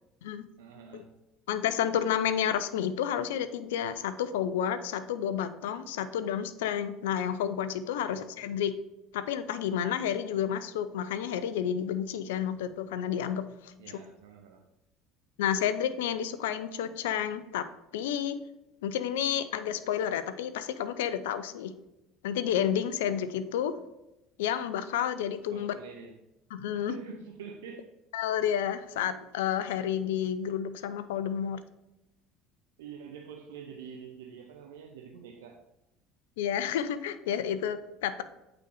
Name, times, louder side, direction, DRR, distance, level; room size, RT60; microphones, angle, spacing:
voice 1, 0.6-1.1 8.0-8.3 13.8-14.6 25.5-26.2 26.7-28.0 32.8-35.6, right 6 dB, 75° right, 0.7 m, -46 dB
voice 2, 1.5-8.7 9.1-13.7 15.4-17.7 17.9-18.4 18.8-21.7 22.2-23.7 24.4-25.7 26.5-27.0 28.1-31.6 36.4-38.2, left 9 dB, 75° left, 0.5 m, -30 dB
8.5 x 4.0 x 4.9 m
hypercardioid pair, 70°, 0 cm